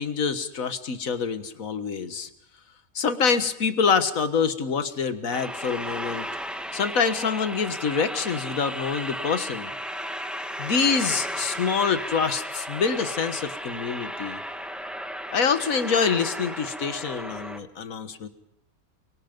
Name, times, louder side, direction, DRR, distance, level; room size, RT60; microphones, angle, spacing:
voice 1, 0.0-2.3 3.0-6.3 6.7-9.7 10.6-14.4 15.3-18.3, left 5 dB, 65° left, 10 dB, 1.8 m, -26 dB
sound 1, 5.3-17.6, equal, ahead, 1.4 m, -34 dB
30.0 x 23.5 x 5.3 m, 0.78 s
omnidirectional pair, 1.5 m